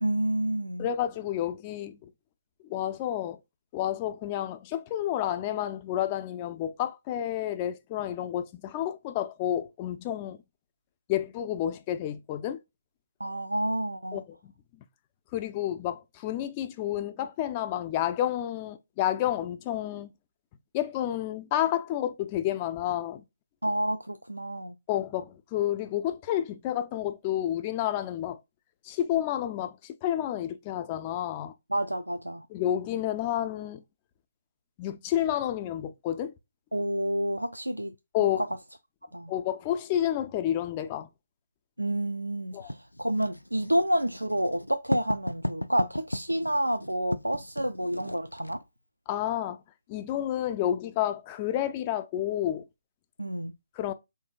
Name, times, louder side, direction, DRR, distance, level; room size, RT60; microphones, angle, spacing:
voice 1, 0.0-0.9 13.2-14.2 23.6-24.7 31.7-32.5 36.7-37.9 38.2-38.5 39.1-39.3 41.8-48.6 53.2-53.5, right 1 dB, 90° right, 0.3 m, -29 dB
voice 2, 0.8-2.1 2.6-3.4 3.7-10.4 11.1-12.6 14.1-14.2 15.3-20.1 20.7-23.2 24.9-28.4 28.8-31.5 32.5-33.8 34.8-36.3 38.1-38.5 39.3-41.1 42.5-42.7 49.1-49.6 49.9-52.7 53.8-53.9, left 11 dB, 25° left, 0.4 m, -30 dB
Writing, 42.7-48.6, left 1 dB, 90° left, 0.4 m, -36 dB
3.6 x 2.6 x 3.7 m
figure-of-eight pair, 140°, 0 cm